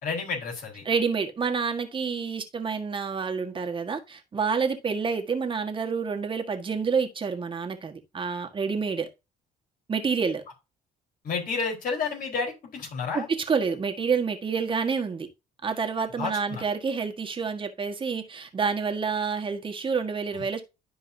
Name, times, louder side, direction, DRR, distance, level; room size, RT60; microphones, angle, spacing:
voice 1, 0.0-0.8 11.2-13.2 16.2-16.6 20.3-20.5, left 5 dB, 55° left, 4.2 m, -31 dB
voice 2, 0.8-9.1 9.9-10.4 13.1-15.3 15.6-20.6, right 5 dB, 30° right, 1.6 m, -28 dB
12.0 x 4.7 x 2.7 m
cardioid pair, 110°, 17 cm